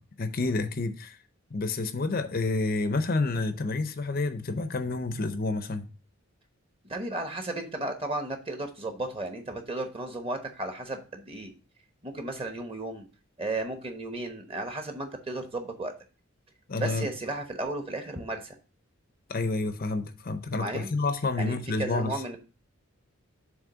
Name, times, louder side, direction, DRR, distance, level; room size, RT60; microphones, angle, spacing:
voice 1, 0.2-1.2 1.5-5.9 16.7-17.1 19.3-22.2, left 3 dB, 40° left, 0.6 m, -29 dB
voice 2, 6.8-11.5 12.0-13.1 13.4-15.9 16.8-18.5 20.5-20.9 21.4-22.4, right 2 dB, 25° right, 1.1 m, -34 dB
7.3 x 3.1 x 6.1 m
head